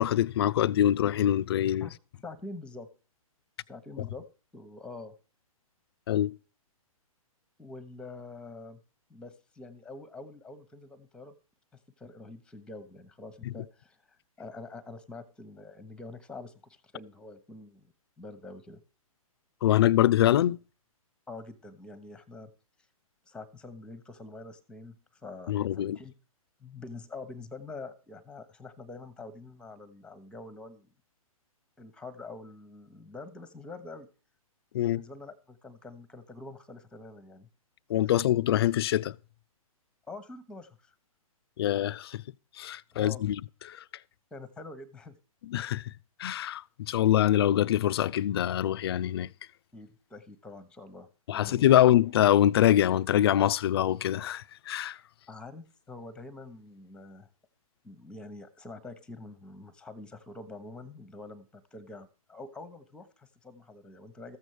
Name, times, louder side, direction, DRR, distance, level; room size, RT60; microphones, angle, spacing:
voice 1, 0.0-1.9 6.1-6.3 19.6-20.6 25.5-26.0 34.7-35.0 37.9-39.1 41.6-42.2 42.6-43.4 43.7-43.8 45.5-45.9 46.2-49.3 51.3-55.0, left 12 dB, 45° left, 0.4 m, -24 dB
voice 2, 2.2-2.9 3.7-4.2 4.5-5.1 7.6-8.8 9.1-11.3 12.0-18.8 21.3-22.5 23.3-26.1 26.6-30.9 31.8-34.1 34.8-37.5 40.1-40.9 42.9-43.3 44.3-45.2 49.7-51.8 55.3-57.3 57.8-64.4, left 3 dB, 5° left, 1.0 m, -45 dB
14.5 x 7.6 x 4.7 m
figure-of-eight pair, 120°, 19 cm